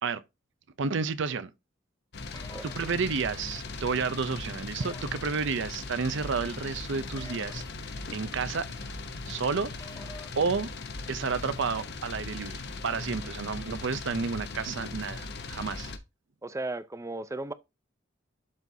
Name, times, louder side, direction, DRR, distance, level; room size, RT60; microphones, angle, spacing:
voice 1, 0.8-1.5 2.6-7.6 8.1-8.7 9.3-9.7 10.4-10.7 11.1-15.9, right 5 dB, 65° right, 0.6 m, -31 dB
sound 1, 2.1-16.0, left 3 dB, 55° left, 0.9 m, -39 dB
sound 2, 2.3-2.7 4.8-5.2 7.2-7.6 9.8-10.3, left 2 dB, 20° left, 0.9 m, -47 dB
voice 2, 16.4-17.5, right 2 dB, 15° right, 0.5 m, -35 dB
12.0 x 4.0 x 2.7 m
head